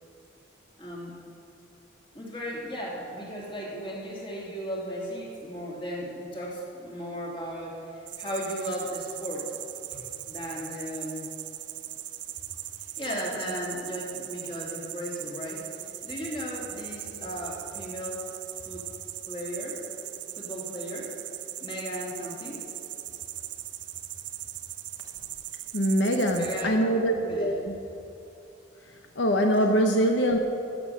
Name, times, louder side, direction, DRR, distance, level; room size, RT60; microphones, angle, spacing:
voice 1, 0.8-1.1 2.1-7.7 8.2-9.4 9.9-10.0 10.3-11.3 12.8-15.6 16.0-18.3 18.6-18.9 19.3-19.8 20.4-21.1 21.6-22.6 26.3-26.9 27.2-27.5, equal, 25° left, -4 dB, 2.8 m, -36 dB
sound 1, 8.1-26.7, right 13 dB, 70° right, 0.6 m, -39 dB
voice 2, 25.7-27.8 29.2-30.4, equal, 80° left, 3 dB, 1.0 m, -23 dB
14.5 x 7.1 x 7.9 m, 2.8 s
head